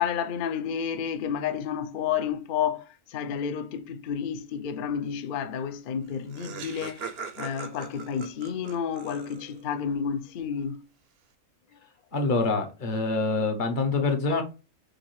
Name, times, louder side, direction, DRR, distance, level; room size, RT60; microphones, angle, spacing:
voice 1, 0.0-7.1 7.4-10.8, left 7 dB, 60° left, 0.5 m, -30 dB
Laughter, 5.8-5.9 6.0-9.7, right 5 dB, 60° right, 0.7 m, -41 dB
voice 2, 12.1-14.4, left 3 dB, 40° left, 1.0 m, -25 dB
6.4 x 2.6 x 3.1 m
omnidirectional pair, 1.5 m